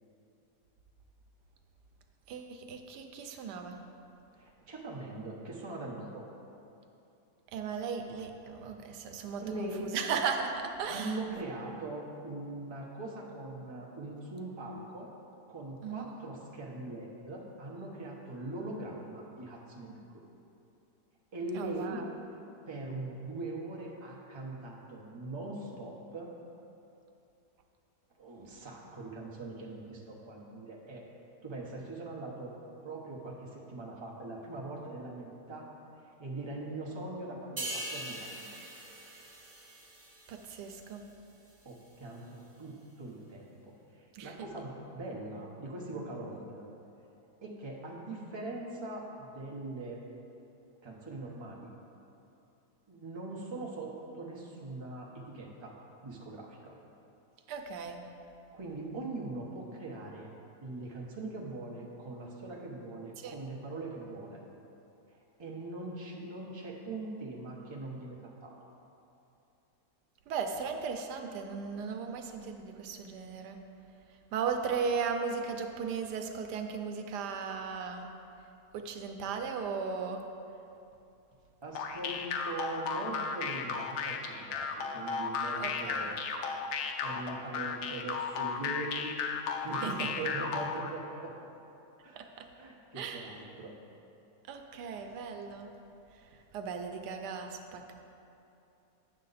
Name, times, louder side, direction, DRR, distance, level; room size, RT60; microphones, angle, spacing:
voice 1, 2.3-3.8 7.5-11.2 15.8-16.1 21.5-22.1 40.3-41.0 44.1-44.3 57.5-58.0 63.2-63.4 70.3-73.6 74.3-78.1 78.7-80.2 85.6-86.0 89.8-90.1 92.2-92.5 93.0-93.4 94.5-95.7 96.5-97.9, right 5 dB, 85° right, 5 dB, 1.2 m, -36 dB
voice 2, 4.3-6.2 9.4-9.9 10.9-15.1 15.5-20.2 21.3-22.0 22.7-26.3 28.2-31.0 31.4-32.5 32.8-35.7 36.2-38.5 41.6-42.7 43.0-43.5 44.0-46.7 47.4-50.0 50.8-51.7 52.9-55.1 55.3-55.8 56.0-56.7 58.5-60.3 60.6-64.4 65.4-68.6 81.6-84.2 84.5-86.2 87.0-89.1 89.6-91.3 92.0-92.3 92.5-93.7, right 2 dB, 20° right, -2 dB, 0.7 m, -41 dB
sound 1, 37.6-41.1 41.5-41.7, right 1 dB, 45° right, 1.9 m, -42 dB
sound 2, 81.8-90.9, left 5 dB, 90° left, 1.2 m, -34 dB
8.8 x 6.6 x 4.0 m, 2.8 s
omnidirectional pair, 1.7 m